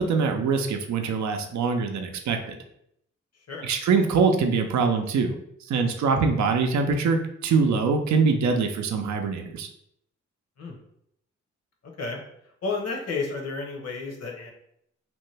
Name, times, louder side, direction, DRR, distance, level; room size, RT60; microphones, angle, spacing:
voice 1, 0.0-2.6 3.6-5.4 5.7-9.7, right 5 dB, 60° right, 4 dB, 0.5 m, -23 dB
voice 2, 12.6-14.5, left 4 dB, 50° left, 0 dB, 1.0 m, -31 dB
2.9 x 2.2 x 3.2 m, 0.73 s
supercardioid pair, 45°, 32 cm